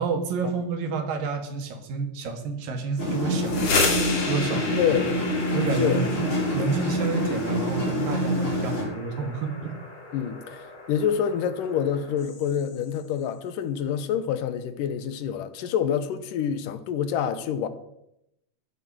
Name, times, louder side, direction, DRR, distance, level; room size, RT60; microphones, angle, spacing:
voice 1, 0.0-3.9 4.3-4.9 5.5-9.7, right 4 dB, 90° right, 3.5 m, -29 dB
sound 1, 3.0-8.8, equal, 30° left, 6.7 m, -26 dB
sound 2, 3.3-13.0, left 3 dB, 50° left, 3.6 m, -33 dB
voice 2, 4.8-5.2 5.8-6.0 10.1-17.7, left 8 dB, 80° left, 2.6 m, -27 dB
13.5 x 11.5 x 6.2 m
omnidirectional pair, 3.8 m